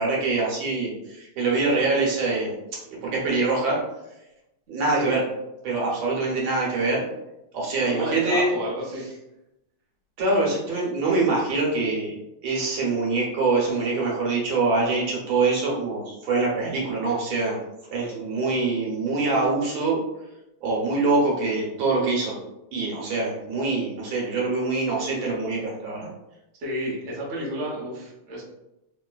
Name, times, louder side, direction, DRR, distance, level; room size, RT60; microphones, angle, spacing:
voice 1, 0.0-2.5 3.0-3.8 4.7-5.2 5.6-7.0 7.5-8.5 10.2-12.2 12.4-17.6 17.9-20.0 20.6-22.4 22.7-26.1, right 3 dB, 70° right, -4 dB, 1.6 m, -24 dB
voice 2, 7.8-9.1 26.6-28.4, equal, 50° right, -4 dB, 0.8 m, -31 dB
3.1 x 3.1 x 2.3 m, 0.91 s
omnidirectional pair, 2.3 m